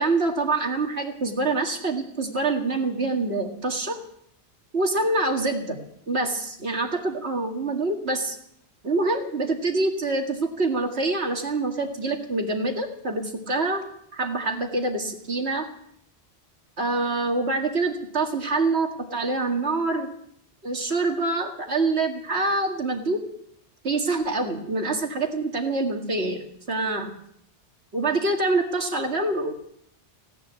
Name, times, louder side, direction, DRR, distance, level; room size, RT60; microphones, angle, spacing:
voice 1, 0.0-4.0 4.7-5.8 6.1-8.4 8.8-13.8 14.1-15.7 16.8-20.1 20.6-23.2 23.8-27.1 27.9-29.5, right 3 dB, 80° right, 3 dB, 2.4 m, -25 dB
17.0 x 10.0 x 8.3 m, 0.70 s
omnidirectional pair, 1.1 m